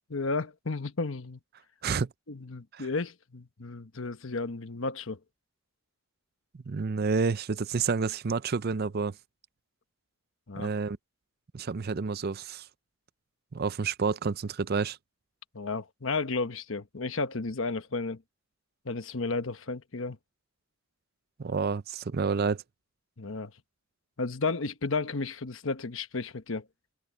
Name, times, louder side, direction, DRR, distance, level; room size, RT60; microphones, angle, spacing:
voice 1, 0.1-1.4 2.3-5.2 10.5-10.7 15.5-18.2 18.8-20.2 23.2-23.5 24.2-26.7, left 3 dB, 70° left, 1.1 m, -33 dB
voice 2, 6.5-9.2 10.6-11.0 11.5-12.7 13.5-15.0 21.4-22.6, right 5 dB, 50° right, 0.5 m, -29 dB
head